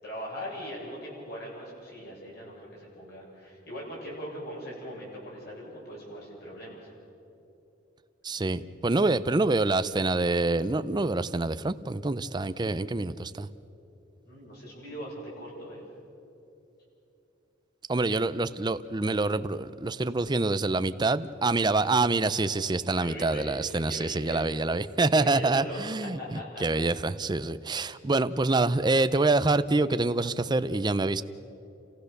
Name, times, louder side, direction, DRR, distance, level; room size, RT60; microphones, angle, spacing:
voice 1, 0.0-6.9 14.2-15.8 23.0-24.4 25.1-25.8 26.2-26.6, equal, 55° left, -4 dB, 7.2 m, -40 dB
voice 2, 8.2-13.5 17.9-31.2, right 3 dB, 20° right, 13 dB, 0.5 m, -26 dB
29.5 x 15.5 x 6.7 m, 2.9 s
head